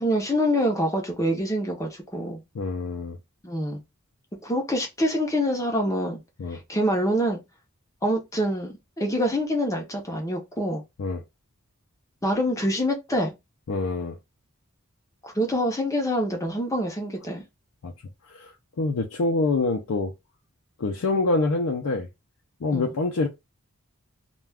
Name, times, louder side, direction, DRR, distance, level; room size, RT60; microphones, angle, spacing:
voice 1, 0.0-2.4 3.4-3.8 4.4-6.2 6.5-7.4 8.0-10.8 12.2-13.3 15.2-17.4 22.7-22.9, equal, 15° left, 0.6 m, -25 dB
voice 2, 2.5-3.2 6.4-6.6 11.0-11.2 13.7-14.2 17.8-17.9 18.3-20.1 20.8-22.1 22.6-23.3, left 3 dB, 70° left, 0.4 m, -26 dB
2.3 x 2.2 x 3.3 m
head